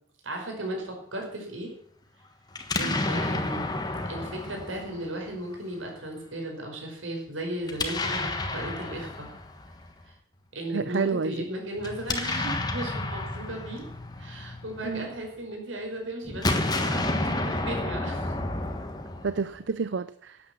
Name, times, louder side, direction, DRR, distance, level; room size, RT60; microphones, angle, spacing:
voice 1, 0.2-1.7 2.8-3.7 4.1-9.3 10.0-10.1 10.5-13.8 14.2-18.4, right 1 dB, 85° right, 1 dB, 5.2 m, -36 dB
Explosion, 2.5-5.6 7.6-9.9 11.8-15.2 16.3-19.6, left 2 dB, 20° left, 1.3 m, -31 dB
voice 2, 10.7-11.4 14.8-15.1 19.2-20.4, right 5 dB, 70° right, 14 dB, 0.5 m, -29 dB
12.0 x 8.9 x 7.5 m, 0.63 s
head